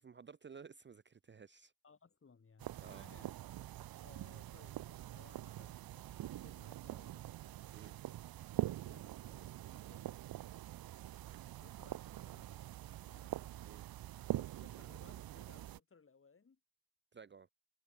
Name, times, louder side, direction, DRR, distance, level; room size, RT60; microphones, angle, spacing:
voice 1, 0.0-1.7 2.8-3.0 7.7-7.9 13.6-13.8 17.1-17.5, right 6 dB, 35° right, 0.7 m, -55 dB
voice 2, 1.8-3.4 4.0-7.3 8.7-10.1 11.6-12.7 13.0-13.4 14.3-16.6, left 5 dB, 40° left, 6.5 m, -64 dB
sound 1, 2.6-15.8, right 14 dB, 85° right, 0.6 m, -44 dB
wide cardioid pair, 160°, 35 cm